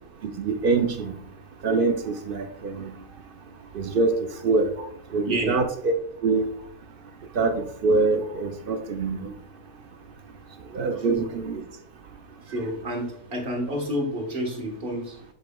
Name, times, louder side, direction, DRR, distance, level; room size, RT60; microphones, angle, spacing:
voice 1, 0.2-1.2 1.6-2.9 3.7-4.7 5.1-5.9 6.2-6.5 7.4-9.3 10.7-11.6, right 3 dB, 60° right, 7 dB, 0.6 m, -24 dB
voice 2, 5.2-5.6 11.0-11.4 12.5-15.2, equal, 40° right, 2 dB, 1.5 m, -29 dB
7.9 x 5.4 x 2.3 m, 0.64 s
omnidirectional pair, 1.5 m